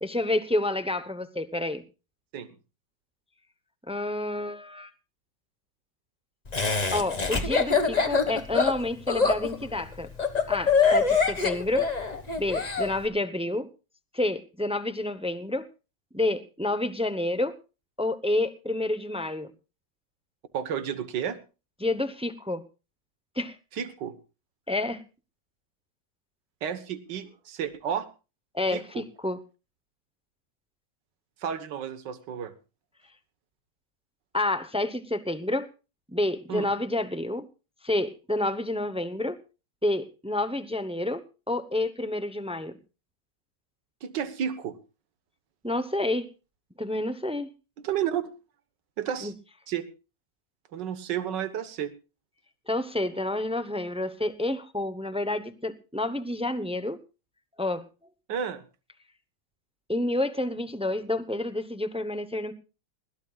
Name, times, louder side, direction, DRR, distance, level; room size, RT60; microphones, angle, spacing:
voice 1, 0.0-1.8 3.9-4.9 6.9-10.1 10.5-11.9 12.4-13.7 14.1-15.7 16.1-17.5 18.0-19.5 21.8-22.6 23.4-23.5 24.7-25.0 28.5-29.4 34.3-35.7 36.1-37.4 37.8-39.4 39.8-42.8 45.6-46.3 46.8-47.5 49.2-49.3 52.7-57.0 57.6-57.8 59.9-62.5, left 1 dB, 10° right, 11 dB, 0.4 m, -29 dB
Laughter, 6.5-12.9, left 5 dB, 25° left, 1.6 m, -24 dB
voice 2, 20.5-21.4 23.7-24.1 26.6-28.1 28.7-29.0 31.4-32.5 36.5-36.7 44.0-44.8 47.8-48.3 49.0-49.3 49.7-49.8 50.7-51.9 58.3-58.6, right 9 dB, 75° right, 10 dB, 1.9 m, -31 dB
21.0 x 16.5 x 2.4 m, 0.32 s
omnidirectional pair, 1.9 m